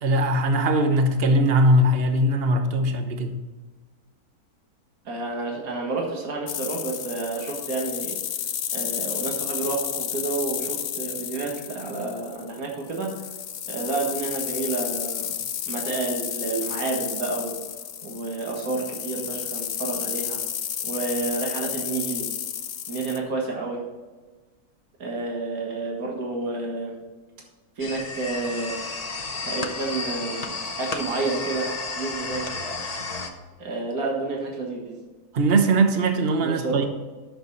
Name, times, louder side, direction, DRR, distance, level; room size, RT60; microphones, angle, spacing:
voice 1, 0.0-3.3 35.3-36.9, right 1 dB, 45° right, 6 dB, 1.1 m, -20 dB
voice 2, 5.1-8.2 8.7-13.1 13.7-15.3 15.7-17.6 18.0-20.4 20.8-22.3 22.9-23.8 25.0-26.9 27.8-28.8 29.4-30.5 30.8-31.7 32.0-32.4 33.6-35.0 36.4-36.9, right 3 dB, 75° right, -1 dB, 2.2 m, -30 dB
sound 1, 6.5-23.2, left 9 dB, 70° left, 1.1 m, -32 dB
sound 2, 27.8-33.3, left 3 dB, 30° left, 0.8 m, -32 dB
11.5 x 6.7 x 4.1 m, 1.3 s
omnidirectional pair, 1.6 m